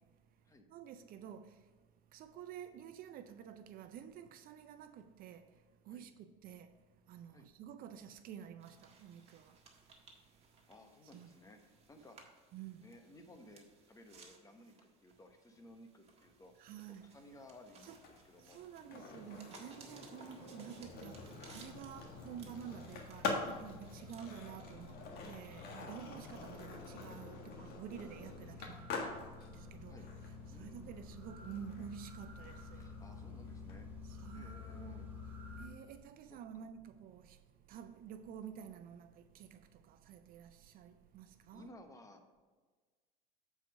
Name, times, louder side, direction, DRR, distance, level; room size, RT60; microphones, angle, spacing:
voice 1, 0.0-10.7 11.1-11.3 12.5-12.9 16.6-17.1 17.8-18.0 18.4-29.1 29.5-30.1 30.5-33.0 34.0-35.1 35.5-41.7, right 8 dB, 50° right, 0.5 m, -51 dB
sound 1, 8.6-24.5, right 4 dB, 30° right, 1.6 m, -62 dB
voice 2, 10.7-12.2 12.8-16.5 16.9-19.1 23.5-23.7 25.8-26.0 29.0-29.2 29.9-30.1 30.5-31.0 32.7-33.9 34.3-35.1 36.3-36.7 41.5-42.2, left 1 dB, 15° left, 1.1 m, -58 dB
Skateboard, 17.9-33.8, left 4 dB, 50° left, 1.6 m, -46 dB
sound 2, 20.8-35.7, left 4 dB, 10° right, 2.4 m, -51 dB
7.9 x 4.8 x 5.3 m
supercardioid pair, 105°, 20 cm